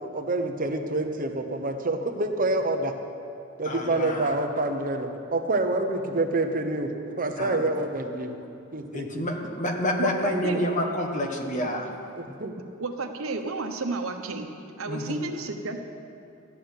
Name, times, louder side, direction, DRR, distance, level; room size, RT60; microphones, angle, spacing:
voice 1, 0.0-2.9 3.6-8.4 8.7-9.2 10.5-10.6 12.2-12.5, right 2 dB, 40° right, 5 dB, 0.9 m, -27 dB
voice 2, 3.6-4.3 7.4-7.7 8.9-11.9 14.8-15.2, left 1 dB, 35° left, 2 dB, 1.5 m, -28 dB
voice 3, 10.0-10.6 12.8-14.5 14.8-15.8, right 3 dB, 80° right, 5 dB, 1.1 m, -31 dB
13.0 x 8.6 x 9.6 m, 2.6 s
head